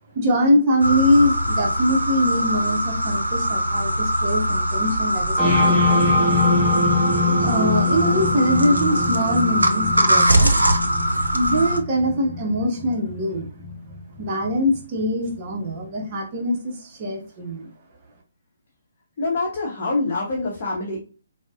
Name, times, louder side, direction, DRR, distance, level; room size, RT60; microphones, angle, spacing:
voice 1, 0.1-6.2 7.4-10.5 11.3-13.4 14.2-17.7, equal, 30° right, 1 dB, 0.7 m, -23 dB
sound 1, 0.8-11.8, right 1 dB, 80° right, 0.5 m, -22 dB
sound 2, 5.4-15.0, left 2 dB, ahead, 1.2 m, -23 dB
voice 2, 19.2-21.0, left 3 dB, 35° left, -3 dB, 0.8 m, -25 dB
3.8 x 2.0 x 2.3 m, 0.36 s
figure-of-eight pair, 135°, 0 cm